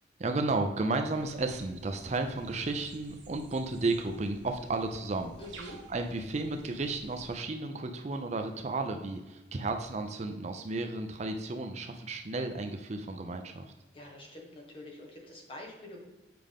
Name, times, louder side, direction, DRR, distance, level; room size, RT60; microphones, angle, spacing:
voice 1, 0.2-5.3 5.6-13.6, right 3 dB, 35° right, 5 dB, 0.5 m, -33 dB
sound 1, 1.1-7.4, right 2 dB, 80° right, 1.2 m, -53 dB
voice 2, 5.4-5.8 13.9-16.0, left 1 dB, 30° left, -1 dB, 1.4 m, -46 dB
7.6 x 4.9 x 3.5 m, 1.1 s
head